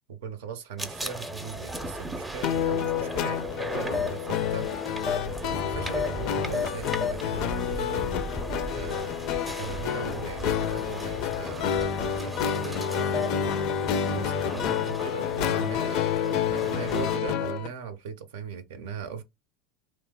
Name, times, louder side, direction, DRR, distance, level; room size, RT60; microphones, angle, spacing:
voice 1, 0.1-4.8 5.4-8.1 8.7-9.2 9.4-13.4 14.1-19.2, right 7 dB, 80° right, 0.5 m, -39 dB
sound 1, 0.8-17.2, left 1 dB, 5° right, 0.5 m, -36 dB
sound 2, 2.4-17.7, left 9 dB, 60° left, 0.4 m, -29 dB
2.9 x 2.0 x 3.5 m
hypercardioid pair, 95°, 0 cm